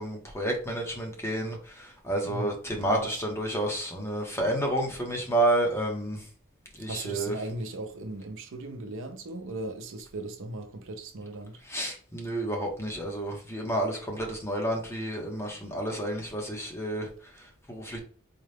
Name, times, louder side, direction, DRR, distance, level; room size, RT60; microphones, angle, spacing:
voice 1, 0.0-6.3 6.8-7.3 11.6-18.0, right 1 dB, 10° left, 0.9 m, -30 dB
voice 2, 2.8-3.1 6.8-11.6, right 2 dB, 65° right, 0.6 m, -37 dB
4.1 x 2.3 x 3.3 m
head